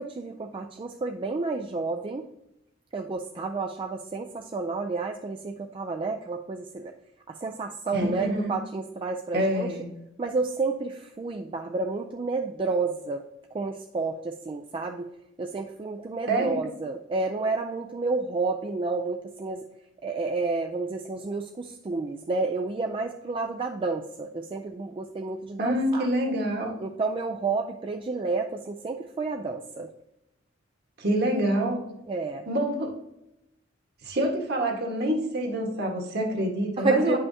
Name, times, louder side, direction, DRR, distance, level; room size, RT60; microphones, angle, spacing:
voice 1, 0.0-2.3 2.9-6.9 7.3-9.7 10.2-15.1 15.4-19.6 20.0-26.1 26.8-29.9 32.1-32.5 36.8-37.2, right 3 dB, 25° right, 3 dB, 0.3 m, -30 dB
voice 2, 7.9-8.6 9.3-9.9 16.3-16.6 25.6-26.7 31.0-31.8 32.5-32.9 34.0-37.2, right 1 dB, 55° right, 1 dB, 1.4 m, -26 dB
9.4 x 5.6 x 2.7 m, 0.86 s
head